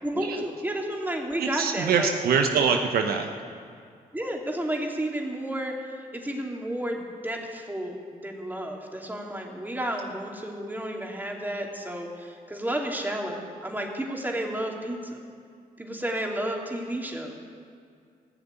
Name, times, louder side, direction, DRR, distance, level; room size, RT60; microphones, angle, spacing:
voice 1, 0.0-2.1 4.1-5.8 6.1-15.2 15.8-17.3, right 1 dB, 10° right, 0 dB, 2.9 m, -31 dB
voice 2, 1.4-3.3, right 6 dB, 80° right, 4 dB, 1.0 m, -24 dB
16.0 x 7.1 x 9.0 m, 2.2 s
supercardioid pair, 50°, 16 cm